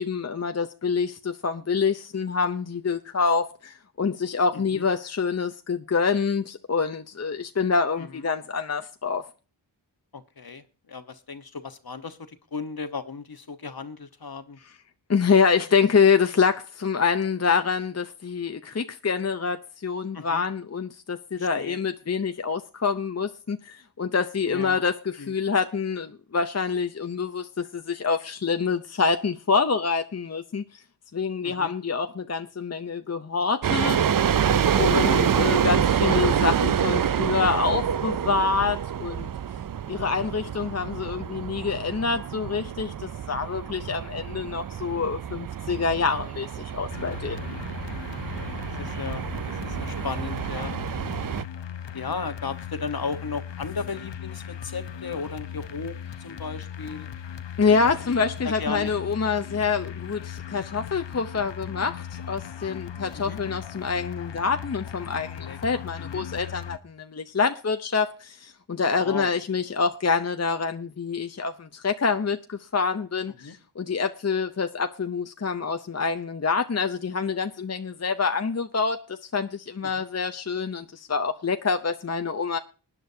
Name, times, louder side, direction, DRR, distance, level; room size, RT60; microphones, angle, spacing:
voice 1, 0.0-9.2 15.1-30.8 31.1-34.0 34.7-39.3 39.9-47.5 57.6-82.6, left 5 dB, 35° left, 0.7 m, -26 dB
voice 2, 4.5-4.8 8.1-8.2 10.1-14.6 20.1-20.4 21.3-21.8 24.5-24.8 25.2-25.3 31.4-31.7 34.8-35.3 48.1-50.7 51.9-57.1 57.8-57.9 58.4-58.9 63.1-63.4 65.4-66.3 69.0-69.3 73.4-73.5 79.8-80.0, left 4 dB, 55° left, 1.2 m, -36 dB
sound 1, 33.6-51.4, right 8 dB, 50° right, 0.5 m, -27 dB
sound 2, 46.9-66.8, left 9 dB, 80° left, 0.8 m, -38 dB
20.0 x 10.0 x 2.7 m
cardioid pair, 45°, 44 cm